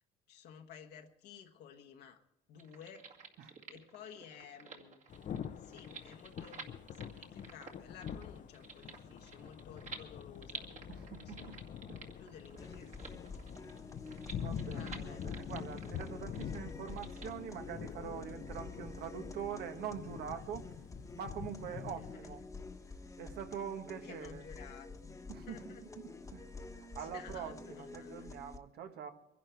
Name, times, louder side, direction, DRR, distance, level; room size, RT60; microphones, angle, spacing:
voice 1, 0.3-2.2 2.5-3.1 3.7-5.0 5.6-10.7 11.2-11.5 12.2-12.9 14.6-15.2 22.0-22.5 23.9-25.8 27.0-28.2, left 8 dB, 75° left, 1.4 m, -54 dB
sound 1, 2.5-17.3, right 4 dB, 45° right, 2.1 m, -52 dB
Thunder / Rain, 5.1-22.1, left 8 dB, 50° left, 0.7 m, -46 dB
voice 2, 10.9-11.6 11.9-12.1 13.6-13.8 14.3-20.7 21.1-22.4 23.2-24.4 25.3-29.1, right 8 dB, 70° right, 1.5 m, -44 dB
sound 2, 12.6-28.6, left 3 dB, 20° left, 1.2 m, -49 dB
23.0 x 11.0 x 4.6 m
cardioid pair, 110°, 17 cm